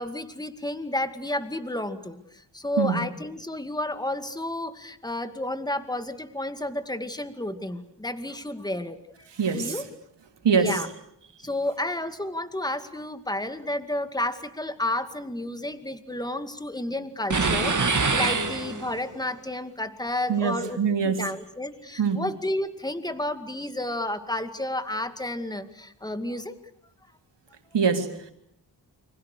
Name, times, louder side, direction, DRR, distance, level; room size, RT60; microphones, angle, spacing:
voice 1, 0.0-9.0 9.5-9.9 10.5-10.9 11.4-20.8 21.0-26.5, left 1 dB, 10° left, 9 dB, 2.2 m, -31 dB
voice 2, 9.4-9.8 10.4-10.8 20.3-21.2 22.0-22.2 27.7-28.3, right 6 dB, 80° right, 5 dB, 3.5 m, -24 dB
sound 1, 17.3-19.1, right 4 dB, 45° right, 2.6 m, -24 dB
29.5 x 26.0 x 6.7 m, 0.71 s
wide cardioid pair, 90°, 42 cm